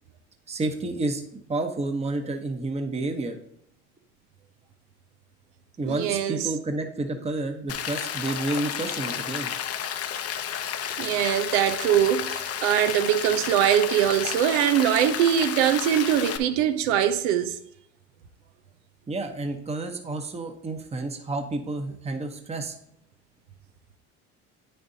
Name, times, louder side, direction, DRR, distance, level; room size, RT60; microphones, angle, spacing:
voice 1, 0.5-1.2 1.5-3.4 5.8-9.5 19.1-22.7, right 2 dB, 20° right, 1.0 m, -30 dB
voice 2, 5.9-6.4 11.0-17.6, right 10 dB, 80° right, 0.8 m, -22 dB
Rain, 7.7-16.4, left 9 dB, 45° left, 0.8 m, -32 dB
8.7 x 6.7 x 2.7 m
supercardioid pair, 80°, 34 cm